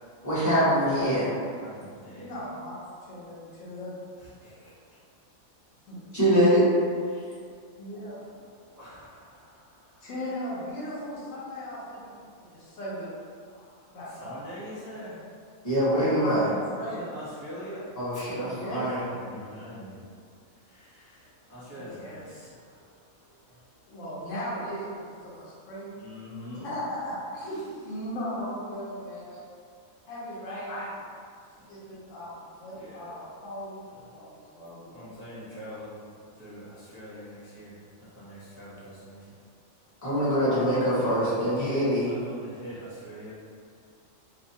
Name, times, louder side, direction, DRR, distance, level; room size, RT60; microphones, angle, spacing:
voice 1, 0.2-1.3 6.1-6.6 15.6-16.5 18.0-19.1 29.3-29.4 30.7-30.8 40.0-42.2, equal, 15° left, -13 dB, 0.8 m, -24 dB
voice 2, 1.5-2.3 4.2-4.7 7.9-8.1 8.7-10.1 14.2-15.2 16.8-17.8 18.1-18.2 18.5-20.0 20.7-22.8 26.0-26.7 31.6-32.1 32.7-33.1 34.9-36.0 36.4-39.4 41.2-43.3, equal, 25° right, -13 dB, 0.4 m, -44 dB
voice 3, 2.2-2.8 3.1-3.9 5.9-6.0 7.8-8.5 10.0-12.1 12.5-13.1 13.5-14.4 15.9-17.0 18.5-19.3 21.8-22.2 23.9-25.9 26.6-29.2 30.1-30.9 31.7-34.9 40.2-40.7, equal, 70° left, -8 dB, 1.0 m, -37 dB
2.6 x 2.3 x 2.7 m, 2.2 s
omnidirectional pair, 1.4 m